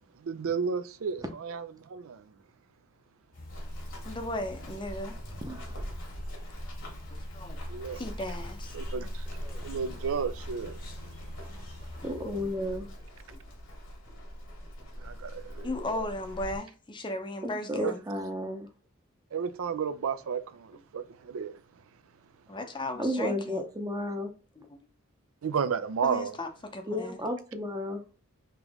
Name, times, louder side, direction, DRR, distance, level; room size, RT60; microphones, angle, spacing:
voice 1, 0.2-2.2 7.7-8.0 8.7-9.3 9.6-10.8 15.0-15.7 17.8-17.9 19.3-21.5 25.4-26.4, right 6 dB, 70° right, 0.4 m, -32 dB
sound 1, 3.3-12.6, left 1 dB, 45° left, 1.0 m, -47 dB
Run, 3.5-16.6, equal, 60° left, 1.4 m, -41 dB
voice 2, 4.0-5.1 7.3-7.6 8.0-8.7 12.0-12.1 12.6-12.7 15.6-18.0 22.5-23.6 24.6-24.8 26.0-27.2, left 1 dB, 20° left, 0.6 m, -36 dB
voice 3, 5.4-5.9 9.4-10.0 12.0-12.9 17.4-18.7 23.0-24.3 26.9-28.0, left 1 dB, 20° right, 0.7 m, -33 dB
3.4 x 3.1 x 3.5 m
head